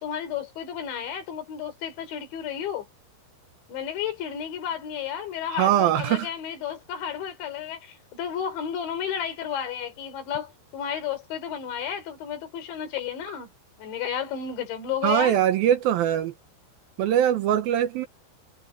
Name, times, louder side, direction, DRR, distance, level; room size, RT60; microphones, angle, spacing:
voice 1, 0.0-2.9 3.7-13.5 13.8-15.4, left 8 dB, 90° left, 5.8 m, -32 dB
voice 2, 5.5-6.3 15.0-16.3 17.0-18.1, right 11 dB, 75° right, 2.4 m, -22 dB
omnidirectional pair, 5.1 m